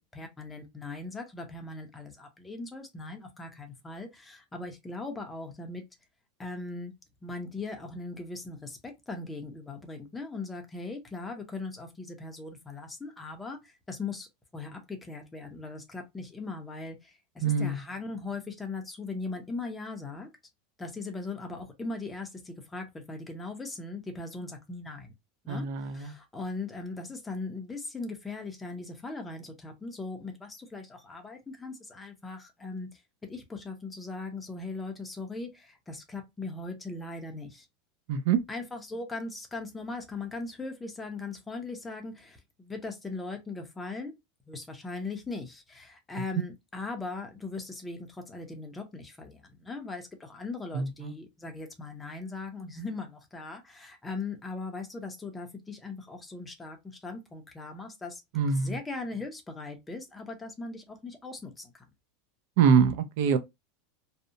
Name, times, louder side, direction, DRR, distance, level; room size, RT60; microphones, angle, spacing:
voice 1, 0.0-5.8 6.4-6.9 7.2-14.3 14.5-20.3 20.8-25.1 25.4-37.7 38.5-44.1 44.5-58.2 58.5-61.9, left 3 dB, 10° left, 0.5 m, -39 dB
voice 2, 17.4-17.8 25.5-26.1 38.1-38.4 50.7-51.1 58.3-58.8 62.6-63.4, right 6 dB, 60° right, 0.4 m, -24 dB
2.7 x 2.0 x 2.5 m
supercardioid pair, 165°, 0 cm